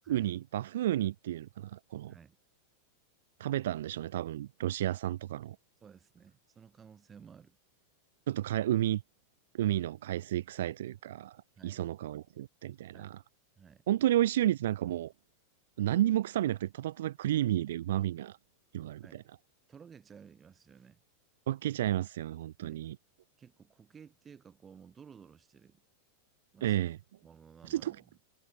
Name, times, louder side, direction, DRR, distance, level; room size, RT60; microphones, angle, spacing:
voice 1, 0.1-2.1 3.4-5.6 8.3-9.0 9.5-11.4 11.6-13.2 13.9-15.1 15.8-18.4 18.7-19.0 21.5-23.0 26.6-27.0 27.6-28.0, right 13 dB, 60° right, 0.4 m, -31 dB
voice 2, 5.8-7.6 11.6-11.8 12.9-13.2 13.6-13.8 19.0-19.3 19.7-21.0 22.6-22.8 23.4-25.8 26.5-26.8 27.2-28.2, right 7 dB, 20° right, 4.8 m, -55 dB
figure-of-eight pair, 90°, 0 cm